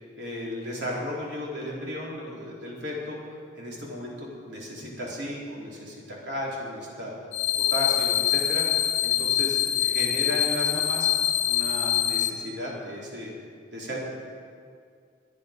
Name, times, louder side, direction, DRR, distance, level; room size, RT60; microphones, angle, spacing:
voice 1, 0.2-3.2 3.6-7.1 7.7-11.1 11.5-13.3 13.7-14.0, left 1 dB, 60° right, -4 dB, 4.0 m, -34 dB
sound 1, 7.3-12.3, left 12 dB, 75° left, 0.8 m, -24 dB
23.5 x 8.6 x 5.3 m, 2.2 s
head